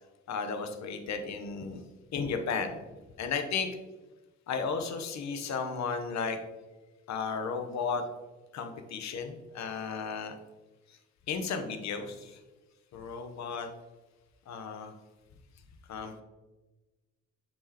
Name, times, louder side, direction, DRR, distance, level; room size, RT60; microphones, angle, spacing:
voice 1, 0.3-1.8 2.1-2.8 3.2-3.7 4.5-6.4 7.1-8.0 8.5-10.3 11.3-12.4 12.9-13.7 14.5-14.9 15.9-16.2, left 5 dB, 65° left, 7 dB, 0.9 m, -34 dB
7.4 x 4.6 x 2.9 m, 1.2 s
cardioid pair, 90°, 30 cm